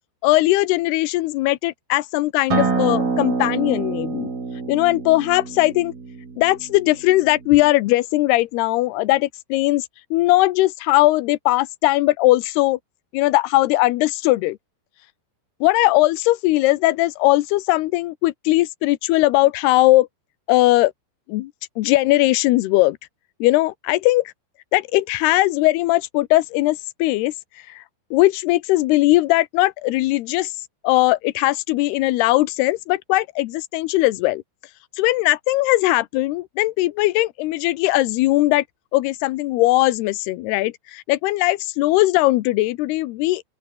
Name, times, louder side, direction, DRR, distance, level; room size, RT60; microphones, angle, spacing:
voice 1, 0.2-4.3 4.7-5.9 6.4-12.8 13.1-14.6 15.6-20.1 20.5-20.9 21.3-21.5 21.8-23.0 23.4-24.3 24.7-27.3 27.7-27.8 28.1-30.5 30.8-34.4 35.0-38.6 38.9-43.4, left 18 dB, 85° left, 2.3 m, -19 dB
Acoustic guitar, 2.5-7.7, right 4 dB, 50° right, 8.4 m, -26 dB
open air
omnidirectional pair, 5.7 m